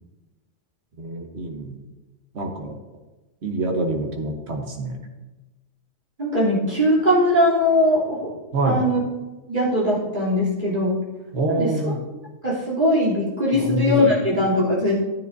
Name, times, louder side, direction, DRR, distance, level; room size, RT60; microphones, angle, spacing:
voice 1, 1.0-1.8 2.3-2.8 3.4-5.0 8.5-8.8 11.3-12.0 13.5-14.1, right 2 dB, 60° right, 3 dB, 1.4 m, -25 dB
voice 2, 6.2-8.2 8.6-9.0 9.5-10.9 11.5-11.7 12.4-14.9, left 1 dB, 40° right, -6 dB, 3.4 m, -20 dB
13.0 x 9.4 x 2.7 m, 1.1 s
omnidirectional pair, 1.3 m